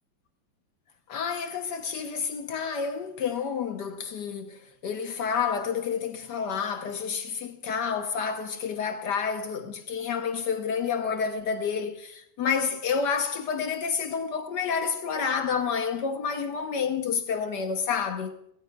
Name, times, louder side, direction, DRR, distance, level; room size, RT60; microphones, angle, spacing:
voice 1, 1.1-18.4, left 6 dB, 65° left, 1.4 m, -29 dB
17.5 x 13.5 x 2.3 m
omnidirectional pair, 2.1 m